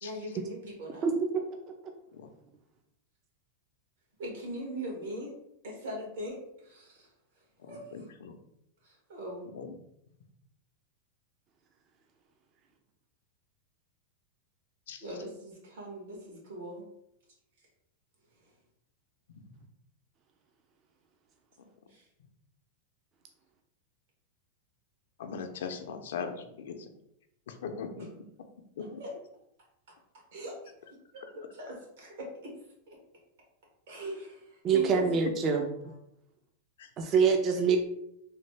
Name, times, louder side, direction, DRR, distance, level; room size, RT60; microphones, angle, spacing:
voice 1, 0.0-1.1 4.2-5.3 5.6-7.1 7.7-8.1 8.8-9.5 15.0-16.8 21.9-22.0 28.0-28.1 28.8-29.2 30.3-30.5 30.8-32.5 32.9-33.0 33.9-35.3 35.8-35.9, equal, 80° right, -1 dB, 1.4 m, -41 dB
voice 2, 7.6-8.4 9.5-9.8 14.9-15.0 21.6-21.7 25.2-26.9 27.5-28.1 28.8-29.0 36.8-36.9, left 6 dB, 80° left, 7 dB, 0.4 m, -40 dB
voice 3, 34.6-35.7 37.0-37.8, right 6 dB, 35° right, 4 dB, 0.3 m, -25 dB
3.1 x 2.1 x 3.2 m, 0.78 s
supercardioid pair, 130°, 0 cm